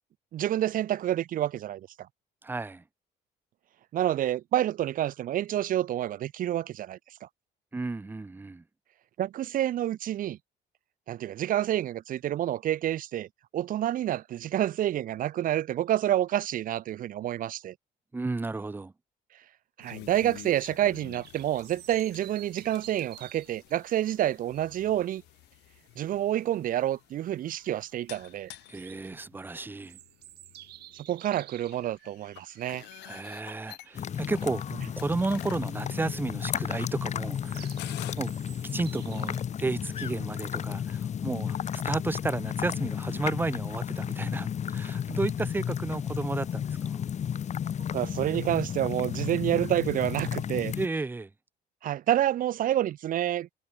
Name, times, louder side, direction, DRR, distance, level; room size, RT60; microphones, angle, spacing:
voice 1, 0.3-1.9 3.9-7.3 9.2-10.4 11.1-13.3 13.5-17.7 19.8-25.2 26.0-28.5 31.1-32.8 47.9-50.7 51.8-53.5, right 12 dB, 55° right, 0.7 m, -28 dB
voice 2, 2.4-2.8 7.7-8.6 18.1-18.9 28.7-30.0 33.0-37.7 38.2-38.3 38.7-47.0 50.8-51.3, right 3 dB, 10° right, 0.6 m, -33 dB
sound 1, 19.8-38.1, left 19 dB, 85° left, 2.9 m, -50 dB
sound 2, 20.9-39.4, right 15 dB, 75° right, 5.2 m, -53 dB
sound 3, 33.9-50.9, left 8 dB, 45° left, 1.4 m, -33 dB
cardioid pair, 110°, 17 cm